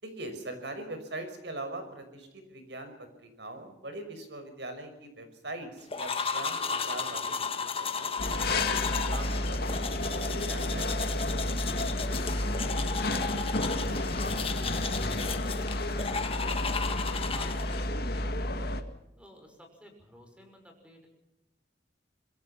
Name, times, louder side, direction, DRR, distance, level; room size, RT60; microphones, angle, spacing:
voice 1, 0.0-9.8 10.1-11.7, right 2 dB, 70° right, 8 dB, 5.9 m, -42 dB
sound 1, 5.9-17.9, left 5 dB, 35° left, 1.8 m, -34 dB
sound 2, 8.2-18.8, left 1 dB, 60° left, 2.0 m, -31 dB
voice 2, 19.2-21.1, equal, 5° right, 4 dB, 6.1 m, -54 dB
26.0 x 21.5 x 5.8 m, 0.90 s
head